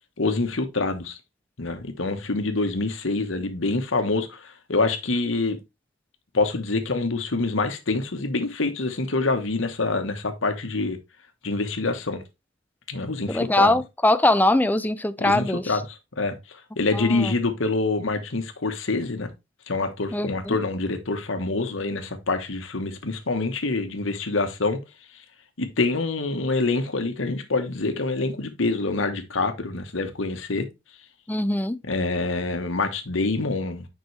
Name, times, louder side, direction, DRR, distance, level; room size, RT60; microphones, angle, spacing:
voice 1, 0.2-1.2 1.6-5.6 6.3-11.0 11.4-12.2 12.9-13.8 15.2-19.3 19.7-24.8 25.6-30.7 31.8-33.9, left 3 dB, 75° left, 1.2 m, -26 dB
voice 2, 13.3-15.6 16.9-17.3 20.1-20.6 31.3-31.8, left 1 dB, 10° left, 0.4 m, -22 dB
7.1 x 5.4 x 3.2 m
head